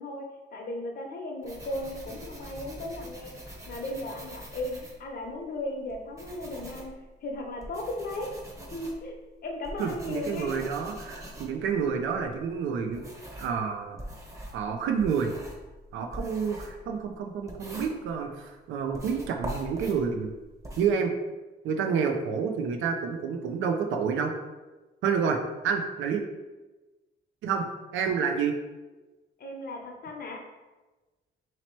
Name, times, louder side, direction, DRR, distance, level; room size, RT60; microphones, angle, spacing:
voice 1, 0.0-3.4 3.7-7.0 7.2-8.3 8.7-9.1 9.4-10.6 29.4-30.4, left 1 dB, 50° left, 1 dB, 0.9 m, -36 dB
sound 1, 1.4-5.4 5.9-13.6 14.0-18.5 18.9-20.9, right 1 dB, 15° right, 0.8 m, -43 dB
voice 2, 9.8-13.1 13.4-14.0 14.5-15.3 15.9-20.3 20.8-21.1 21.6-24.3 25.0-25.4 25.6-26.2 27.4-27.7 27.9-28.5, right 6 dB, 80° right, 4 dB, 0.5 m, -29 dB
3.0 x 2.9 x 4.4 m, 1.2 s
cardioid pair, 90°, 20 cm